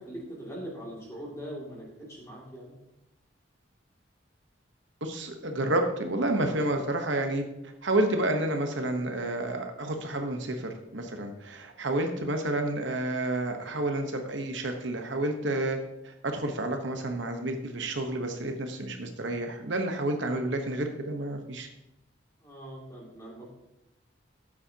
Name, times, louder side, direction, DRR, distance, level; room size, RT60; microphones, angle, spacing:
voice 1, 0.0-2.7 11.8-12.1 22.4-23.5, equal, 15° left, -4 dB, 2.5 m, -42 dB
voice 2, 5.0-7.4 7.8-15.8 16.0-21.7, right 1 dB, 70° right, 4 dB, 1.1 m, -30 dB
12.5 x 8.6 x 2.9 m, 0.89 s
head